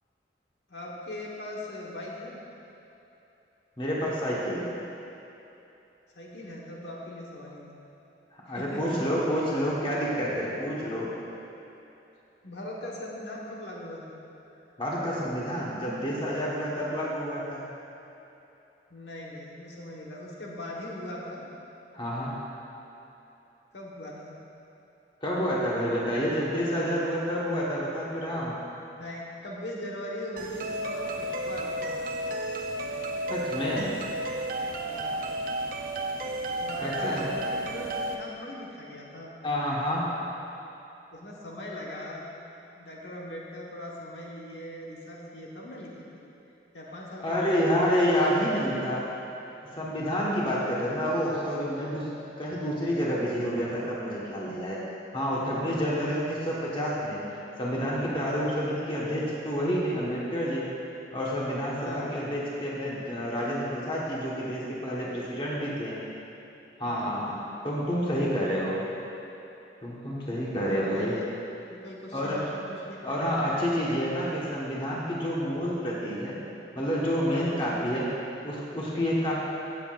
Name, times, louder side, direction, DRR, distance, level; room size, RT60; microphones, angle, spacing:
voice 1, 0.7-2.4 6.1-7.8 8.5-9.1 12.4-14.2 16.7-16.9 18.9-21.5 23.7-24.4 29.0-31.7 34.8-35.3 36.6-39.3 41.1-42.3 42.7-46.3 46.7-47.9 55.3-56.0 61.8-62.1 66.8-67.2 70.5-71.3 71.7-73.3 77.3-77.6, left 1 dB, 70° left, -4 dB, 1.3 m, -40 dB
voice 2, 3.8-4.7 8.3-11.1 14.8-17.6 21.9-22.4 25.2-28.6 33.3-33.9 36.8-37.2 39.4-40.1 47.2-49.1 49.7-52.1 52.4-54.8 55.1-57.2 57.6-60.7 61.1-66.0 66.8-67.4 67.6-68.8 69.8-71.2 72.1-72.4 73.0-76.4 76.7-78.1 78.4-79.3, equal, 25° left, -6 dB, 1.3 m, -29 dB
sound 1, 30.4-38.1, right 1 dB, 50° right, 0.6 m, -32 dB
16.0 x 7.6 x 2.5 m, 2.9 s
head